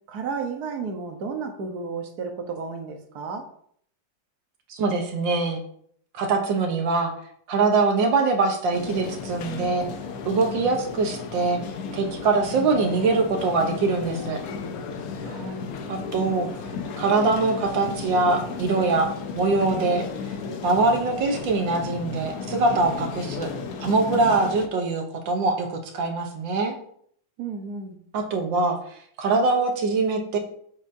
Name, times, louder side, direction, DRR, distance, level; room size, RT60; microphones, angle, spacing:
voice 1, 0.1-3.5 15.2-15.7 27.4-28.0, right 4 dB, 60° right, 4 dB, 1.5 m, -32 dB
voice 2, 4.7-5.6 6.2-7.1 7.5-9.9 10.3-11.6 11.9-14.4 15.9-16.5 17.0-20.0 20.6-23.5 23.8-26.7 28.1-28.8 29.2-30.4, right 3 dB, 85° right, 3 dB, 1.8 m, -23 dB
sound 1, 8.7-24.7, left 5 dB, 60° left, 1.1 m, -34 dB
7.2 x 7.1 x 2.7 m, 0.63 s
omnidirectional pair, 2.0 m